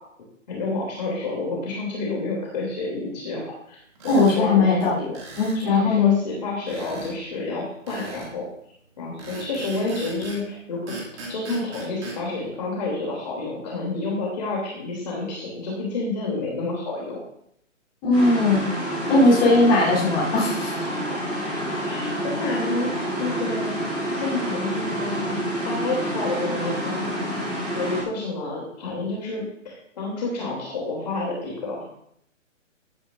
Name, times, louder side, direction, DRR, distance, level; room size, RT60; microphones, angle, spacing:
voice 1, 0.5-3.8 4.0-4.8 5.5-8.4 9.0-10.9 11.3-17.2 20.9-21.0 21.8-23.8 24.1-27.1 27.7-31.8, left 3 dB, 35° left, -4 dB, 3.1 m, -29 dB
sound 1, 4.0-4.4 5.1-5.6 6.7-7.1 7.9-8.3 9.2-10.4 10.9-12.2, right 2 dB, 20° right, 2.4 m, -38 dB
voice 2, 4.1-6.2 18.0-18.7 19.1-20.9 21.4-21.6, left 3 dB, 15° left, -9 dB, 3.6 m, -19 dB
sound 2, 18.1-28.0, right 1 dB, 5° right, 0.9 m, -28 dB
15.5 x 10.5 x 2.6 m, 0.72 s
hypercardioid pair, 175°, 39 cm